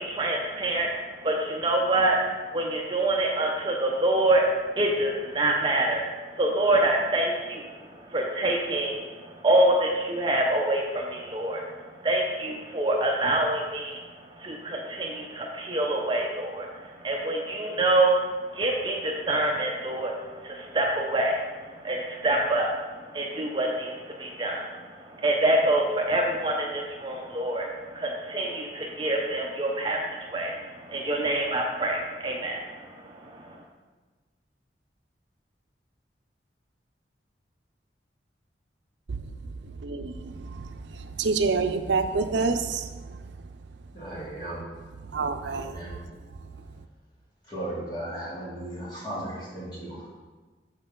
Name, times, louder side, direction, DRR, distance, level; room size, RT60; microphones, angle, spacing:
voice 1, 0.0-18.2 18.5-33.5, right 1 dB, 25° right, 0 dB, 0.7 m, -26 dB
voice 2, 39.8-43.2 45.1-45.8, right 4 dB, 85° right, 8 dB, 0.5 m, -28 dB
voice 3, 43.9-44.7 45.4-46.0 47.4-50.1, right 1 dB, 25° left, -7 dB, 2.5 m, -36 dB
7.2 x 6.5 x 3.8 m, 1.3 s
head